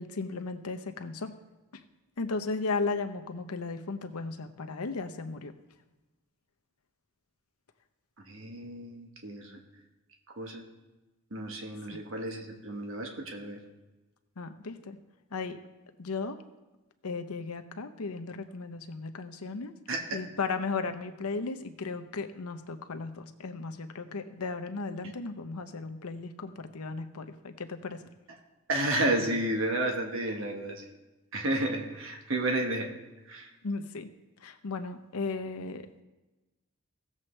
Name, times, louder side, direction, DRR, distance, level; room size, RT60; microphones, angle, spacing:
voice 1, 0.0-1.3 2.2-5.5 11.9-12.0 14.4-15.0 15.3-15.6 16.0-16.4 17.0-19.7 20.1-28.1 33.6-34.1 34.4-35.8, left 4 dB, 85° left, 8 dB, 0.8 m, -35 dB
voice 2, 8.3-9.6 10.4-10.6 11.3-13.6 19.9-20.2 28.7-30.9 31.3-32.9 33.3-33.5, right 1 dB, 65° right, 2 dB, 1.4 m, -31 dB
16.5 x 7.4 x 3.3 m, 1.1 s
head